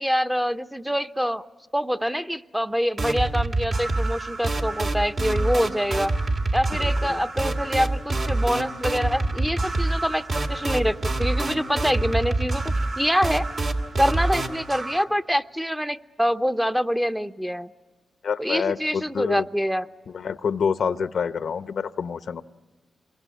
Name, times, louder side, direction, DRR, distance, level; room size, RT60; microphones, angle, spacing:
voice 1, 0.0-1.4 1.7-6.1 6.5-12.6 13.0-13.5 14.0-17.7 18.4-19.9, equal, 5° right, 0.8 m, -25 dB
sound 1, 3.0-15.0, right 2 dB, 60° right, 2.7 m, -26 dB
voice 2, 6.7-7.2 18.2-19.5 20.1-22.4, left 6 dB, 75° left, 0.8 m, -27 dB
27.5 x 23.0 x 8.4 m
cardioid pair, 55°, 0 cm